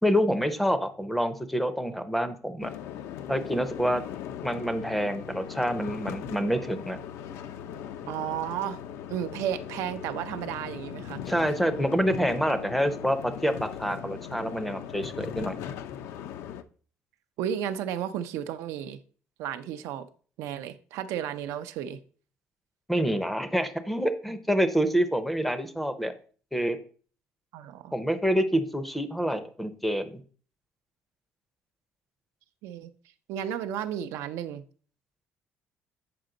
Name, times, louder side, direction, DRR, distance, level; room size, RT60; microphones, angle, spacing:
voice 1, 0.0-2.7 3.3-4.0 4.4-7.0 11.3-15.6 22.9-26.1 26.5-26.8 27.9-30.2, equal, ahead, 0.5 m, -27 dB
sound 1, 2.6-16.6, left 9 dB, 70° left, 0.5 m, -39 dB
voice 2, 8.1-8.8 9.1-11.2 17.4-19.0 19.4-20.1 20.4-22.0 27.5-27.9 32.6-32.9 33.3-34.6, right 10 dB, 75° right, 0.5 m, -33 dB
7.7 x 5.1 x 3.8 m
cardioid pair, 165°, 5 cm